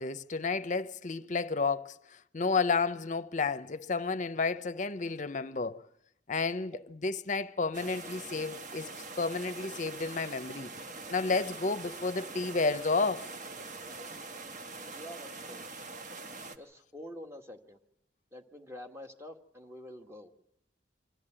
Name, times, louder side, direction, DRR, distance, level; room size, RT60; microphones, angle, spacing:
voice 1, 0.0-5.8 6.3-10.7 11.1-13.3, left 4 dB, 40° left, 0.7 m, -31 dB
sound 1, 7.7-16.6, right 3 dB, 45° right, 1.3 m, -44 dB
voice 2, 14.8-15.6 16.5-17.8 18.3-20.3, left 1 dB, 15° right, 1.6 m, -47 dB
26.0 x 13.5 x 8.9 m
head